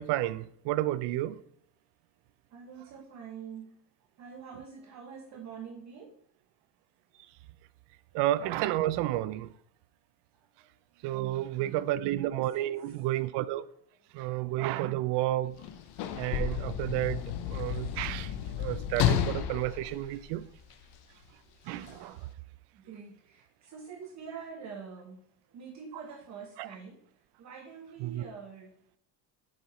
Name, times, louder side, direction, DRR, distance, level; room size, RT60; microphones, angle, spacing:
voice 1, 0.0-1.4 8.1-9.5 11.0-13.7 14.1-15.5 16.2-20.4 21.7-22.3 26.6-26.7 28.0-28.3, right 15 dB, 70° right, 0.5 m, -31 dB
voice 2, 2.5-3.7 4.2-6.1 8.1-8.2 11.1-11.9 12.4-12.8 14.4-14.5 16.7-16.8 19.8-19.9 22.7-25.2 25.5-27.0 27.4-29.0, right 6 dB, 40° right, 1.0 m, -46 dB
Sliding door / Slam, 15.5-20.9 21.8-22.0, left 9 dB, 65° left, 0.8 m, -32 dB
6.7 x 4.6 x 4.2 m
cardioid pair, 160°, 43 cm